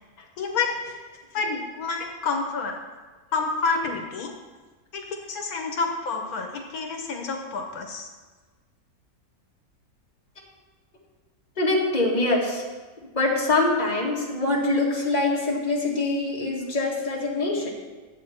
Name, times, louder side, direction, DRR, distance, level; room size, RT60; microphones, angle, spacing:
voice 1, 0.4-1.0 1.3-2.7 3.3-4.3 4.9-8.1, left 4 dB, 75° left, 2 dB, 1.4 m, -28 dB
voice 2, 11.6-12.6 13.1-17.7, left 2 dB, 30° left, -4 dB, 1.8 m, -24 dB
10.0 x 7.7 x 4.3 m, 1.3 s
omnidirectional pair, 1.6 m